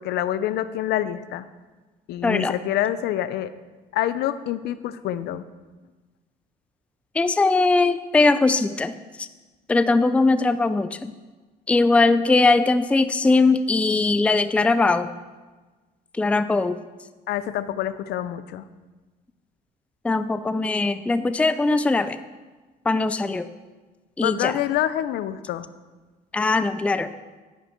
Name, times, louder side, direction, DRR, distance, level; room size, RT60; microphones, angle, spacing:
voice 1, 0.0-1.5 2.1-3.5 3.9-5.4 17.3-18.6 24.2-25.7, left 12 dB, 75° left, 14 dB, 0.6 m, -26 dB
voice 2, 2.2-2.5 7.2-8.9 9.2-9.3 9.7-11.1 11.7-15.1 16.2-16.8 20.0-22.2 22.9-23.5 24.2-24.6 26.3-27.1, left 3 dB, 5° left, 12 dB, 0.4 m, -20 dB
10.0 x 9.7 x 4.5 m, 1.3 s
cardioid pair, 110°, 17 cm